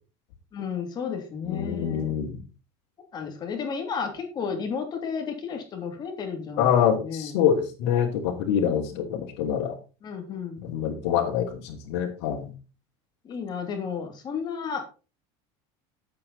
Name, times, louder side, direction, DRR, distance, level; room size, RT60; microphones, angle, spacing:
voice 1, 0.5-2.1 3.1-6.7 7.0-7.3 8.9-9.1 10.0-10.7 13.2-14.9, left 6 dB, 30° left, 4 dB, 3.0 m, -33 dB
voice 2, 1.5-2.4 6.6-9.7 10.6-12.5, left 8 dB, 80° left, -5 dB, 2.9 m, -25 dB
11.5 x 8.4 x 4.2 m, 0.34 s
cardioid pair, 150°, 14 cm